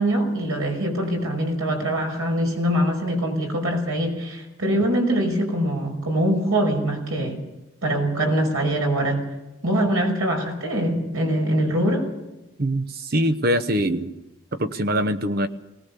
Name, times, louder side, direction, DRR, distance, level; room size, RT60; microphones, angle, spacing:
voice 1, 0.0-7.4 7.8-9.2 9.6-12.1, right 1 dB, 85° right, 2 dB, 5.6 m, -23 dB
voice 2, 12.6-14.2 14.5-15.5, equal, 45° right, 9 dB, 0.9 m, -23 dB
20.5 x 18.5 x 6.9 m, 1.0 s
head